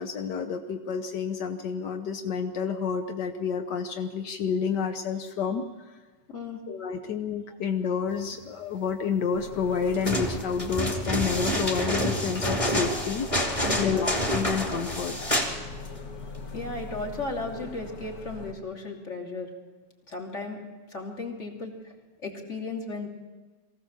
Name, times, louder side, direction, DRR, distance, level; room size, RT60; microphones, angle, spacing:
voice 1, 0.0-6.0 6.7-15.2, left 6 dB, 85° left, 6 dB, 1.7 m, -29 dB
voice 2, 6.3-6.6 6.9-7.0 13.6-14.0 16.5-19.5 20.1-20.6 20.9-21.7 22.2-23.1, left 3 dB, 45° left, 0 dB, 3.3 m, -35 dB
sound 1, 9.3-18.5, left 3 dB, 60° left, 2.0 m, -42 dB
sound 2, 9.9-15.6 15.9-16.0, equal, 20° left, 2.9 m, -28 dB
23.0 x 16.0 x 7.3 m, 1.4 s
omnidirectional pair, 1.8 m